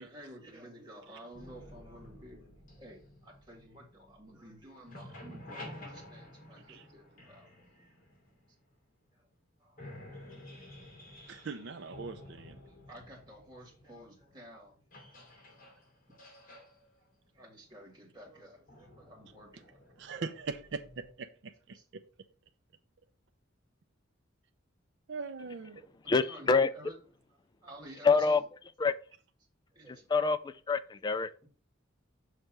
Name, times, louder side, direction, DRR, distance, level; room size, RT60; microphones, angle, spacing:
voice 1, 0.0-8.0 9.1-9.3 9.6-9.8 10.3-10.4 11.3-11.4 12.7-14.9 15.3-15.7 17.0-17.1 17.3-19.9 21.7-21.9 26.0-27.0 27.3-28.4 29.7-30.4 31.4-31.5, right 1 dB, 20° right, 2.1 m, -52 dB
sound 1, 1.3-4.5 4.8-8.7 9.3-9.4 9.7-21.1, left 1 dB, 45° left, 2.5 m, -52 dB
voice 2, 11.3-12.6 20.0-21.8 25.1-25.9, right 4 dB, 60° right, 0.5 m, -41 dB
voice 3, 26.1-26.7 28.0-28.4 28.8-28.9 30.1-31.3, left 4 dB, 20° left, 0.3 m, -26 dB
6.5 x 3.3 x 6.0 m
head